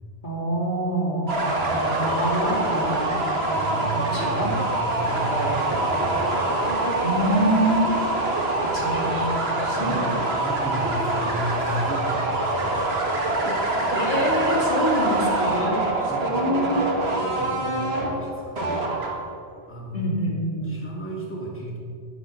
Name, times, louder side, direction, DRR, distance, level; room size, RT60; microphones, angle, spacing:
voice 1, 0.2-1.4 1.7-4.5 5.0-5.5 7.0-8.1 8.7-9.3 9.6-10.2 13.9-16.9 19.9-20.7, equal, 45° left, -3 dB, 2.7 m, -26 dB
sound 1, 1.3-19.4, right 2 dB, 70° right, 1.9 m, -25 dB
voice 2, 3.5-4.5 4.8-6.3 6.5-6.7 8.2-8.4 9.0-9.2 9.8-10.0 10.4-13.9 16.1-16.7 17.1-18.8 19.7-20.1 20.6-21.8, right 1 dB, 10° left, -3 dB, 2.3 m, -34 dB
11.0 x 9.6 x 6.6 m, 2.3 s
omnidirectional pair, 1.1 m